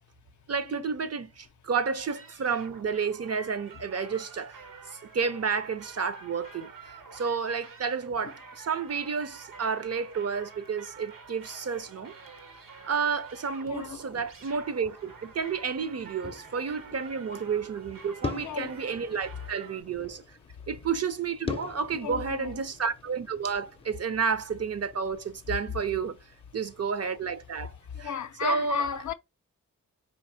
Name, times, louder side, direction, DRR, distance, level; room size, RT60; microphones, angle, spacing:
voice 1, 0.5-4.6 5.1-6.7 7.1-12.1 12.8-20.2 20.7-26.2 26.5-27.7 28.0-28.1 28.4-28.8, right 5 dB, 50° right, 0.6 m, -31 dB
sound 1, 2.1-19.8, right 5 dB, 80° right, 1.0 m, -49 dB
voice 2, 13.6-14.0 18.3-18.7 21.9-22.6 27.9-29.1, left 7 dB, 60° left, 0.5 m, -34 dB
sound 2, 13.7-28.1, left 4 dB, 15° left, 0.6 m, -45 dB
4.5 x 2.9 x 2.7 m
cardioid pair, 65°, 33 cm